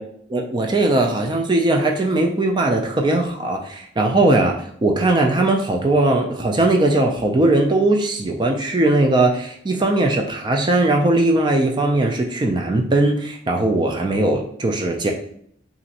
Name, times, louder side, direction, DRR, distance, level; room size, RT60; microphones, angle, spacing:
voice 1, 0.3-15.1, right 2 dB, 25° right, 3 dB, 0.3 m, -19 dB
2.9 x 2.5 x 2.7 m, 0.66 s
head